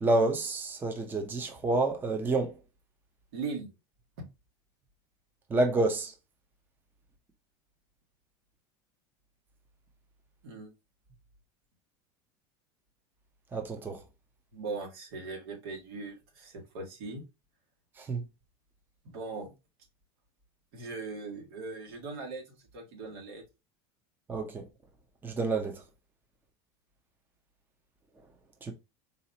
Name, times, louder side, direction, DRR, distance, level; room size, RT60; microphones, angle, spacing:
voice 1, 0.0-2.5 5.5-6.1 13.5-14.0 18.0-18.2 24.3-24.6 25.2-25.8 28.6-28.7, right 2 dB, 15° right, 0.7 m, -28 dB
voice 2, 3.3-3.7 4.2-4.3 10.4-10.7 14.5-17.2 19.0-19.5 20.7-23.4, right 3 dB, 80° right, 1.8 m, -39 dB
4.1 x 2.8 x 2.7 m
supercardioid pair, 130°, 13 cm